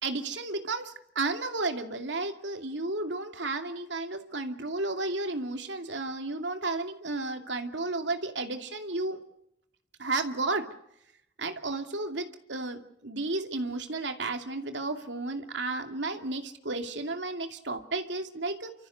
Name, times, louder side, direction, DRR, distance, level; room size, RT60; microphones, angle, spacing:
voice 1, 0.0-9.2 10.0-10.7 11.4-18.7, right 2 dB, 80° right, 6 dB, 2.6 m, -33 dB
29.5 x 14.0 x 8.1 m, 0.78 s
head